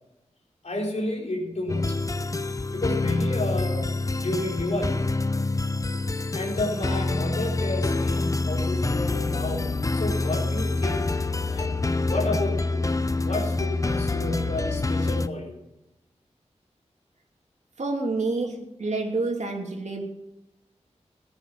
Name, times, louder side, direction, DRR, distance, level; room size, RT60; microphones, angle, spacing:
voice 1, 0.6-2.1 2.7-5.2 6.3-11.2 11.5-12.9 13.1-15.6, left 2 dB, 70° left, 0 dB, 4.0 m, -31 dB
sound 1, 1.7-15.3, left 2 dB, 25° left, 0.7 m, -26 dB
voice 2, 17.8-20.0, right 3 dB, 75° right, 1 dB, 3.0 m, -28 dB
14.0 x 9.7 x 6.0 m, 0.91 s
cardioid pair, 55°, 12 cm